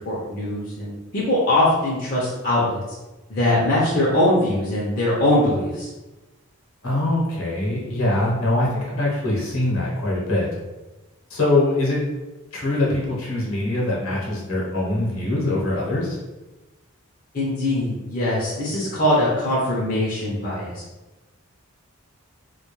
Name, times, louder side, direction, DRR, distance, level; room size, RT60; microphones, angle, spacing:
voice 1, 0.1-2.8 3.3-5.9 17.3-20.8, left 1 dB, 40° left, -7 dB, 0.5 m, -21 dB
voice 2, 6.8-10.5 11.3-12.0 12.5-16.2, left 2 dB, 70° left, -4 dB, 0.8 m, -23 dB
2.2 x 2.2 x 3.0 m, 1.1 s
head